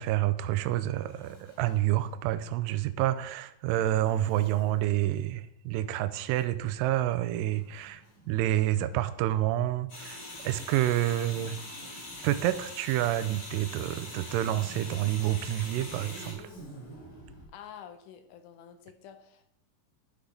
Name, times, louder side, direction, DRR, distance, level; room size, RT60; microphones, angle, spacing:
voice 1, 0.0-11.6 12.2-16.5, right 13 dB, 85° right, 2.2 m, -28 dB
Zipper (clothing), 0.8-2.2 3.8-4.9 6.3-9.5 10.3-12.6 13.5-17.5, right 1 dB, 55° left, 3.9 m, -52 dB
sound 1, 9.9-16.3, left 1 dB, 30° left, 2.9 m, -43 dB
voice 2, 17.5-19.5, left 9 dB, 75° left, 2.1 m, -48 dB
11.5 x 5.0 x 3.3 m
omnidirectional pair, 4.0 m